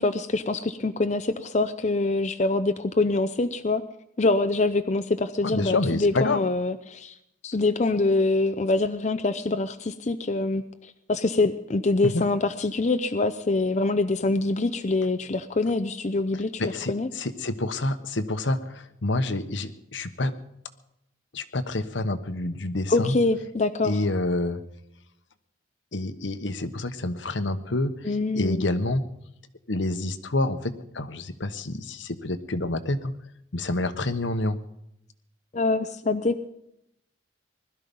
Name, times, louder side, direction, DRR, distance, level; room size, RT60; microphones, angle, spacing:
voice 1, 0.0-3.8 4.2-7.1 7.4-17.1 22.9-24.0 28.0-28.6 35.5-36.5, left 2 dB, 35° left, 9 dB, 0.6 m, -25 dB
voice 2, 5.4-6.4 12.0-12.2 16.6-20.3 21.3-23.2 23.8-24.6 25.9-29.0 29.7-33.1 33.5-34.6, left 2 dB, 75° left, 10 dB, 1.1 m, -28 dB
20.5 x 12.5 x 5.4 m, 0.81 s
head